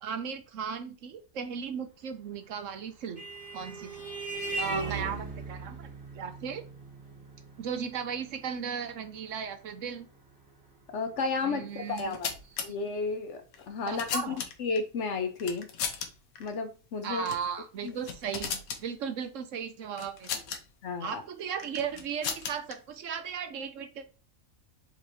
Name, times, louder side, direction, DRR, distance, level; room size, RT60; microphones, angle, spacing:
voice 1, 0.0-3.3 3.5-3.9 4.6-5.9 6.1-6.6 7.6-10.1 11.4-12.2 13.9-14.4 17.0-20.5 21.0-24.1, right 7 dB, 70° right, 8 dB, 1.0 m, -36 dB
Vehicle horn car horn honking, 2.5-11.5, right 3 dB, 40° right, 2.1 m, -40 dB
voice 2, 10.9-12.3 12.6-15.7 16.4-17.3 17.8-18.0 20.8-21.2, left 4 dB, 60° left, 7 dB, 0.9 m, -33 dB
sound 1, 11.9-12.7 13.5-14.8 15.4-16.1 16.4-16.5 17.2-17.5 17.8-18.8 20.0-20.6 21.6-22.7, left 7 dB, 80° left, 1.2 m, -36 dB
4.4 x 4.2 x 2.6 m, 0.33 s
omnidirectional pair, 1.5 m